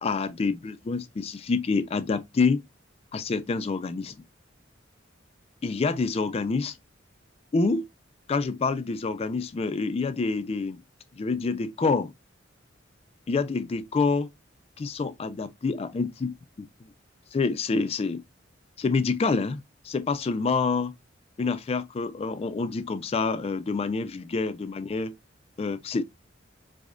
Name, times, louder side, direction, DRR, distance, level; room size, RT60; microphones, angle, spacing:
voice 1, 0.0-2.6 3.1-4.1 5.6-6.7 7.5-7.9 8.3-10.8 11.2-12.1 13.3-14.3 14.8-16.7 17.3-18.2 18.8-20.9 21.4-25.1 25.6-26.0, left 4 dB, 30° left, 0.3 m, -27 dB
4.8 x 2.1 x 2.4 m
head